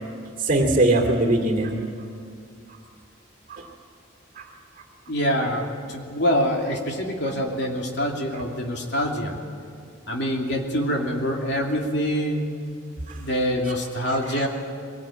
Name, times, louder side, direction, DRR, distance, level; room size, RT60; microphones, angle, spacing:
voice 1, 0.4-1.8 3.5-3.6 4.4-4.5 13.1-13.2 14.0-14.4, right 2 dB, 45° right, 3 dB, 2.5 m, -22 dB
voice 2, 5.1-9.4 10.1-12.5 13.2-14.5, equal, 60° left, 1 dB, 2.9 m, -25 dB
22.0 x 19.0 x 8.9 m, 2.3 s
head